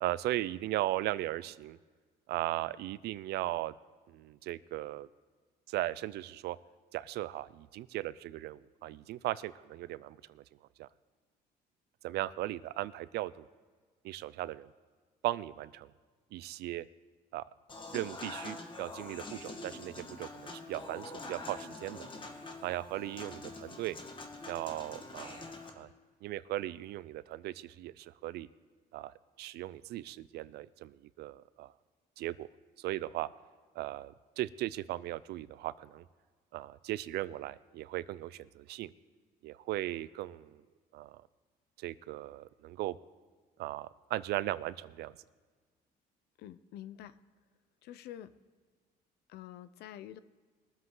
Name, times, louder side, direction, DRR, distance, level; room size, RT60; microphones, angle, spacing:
voice 1, 0.0-1.8 2.3-3.7 4.1-5.1 5.7-6.6 6.9-10.4 10.8-10.9 12.0-13.4 14.0-14.7 15.2-15.9 16.3-16.9 17.3-17.4 17.9-22.1 22.6-24.0 24.4-25.4 25.8-25.9 26.2-28.5 28.9-31.7 32.2-32.5 32.8-33.3 33.7-36.0 36.5-38.9 39.4-40.6 40.9-41.2 41.8-43.0 43.6-45.1, right 15 dB, 75° right, 18 dB, 0.5 m, -37 dB
Human voice / Acoustic guitar / Piano, 17.7-25.7, left 2 dB, 30° left, 1.6 m, -45 dB
voice 2, 46.4-47.2 47.8-48.3 49.3-50.2, left 12 dB, 75° left, 15 dB, 0.6 m, -47 dB
21.5 x 7.6 x 3.9 m, 1.5 s
cardioid pair, 110°, 17 cm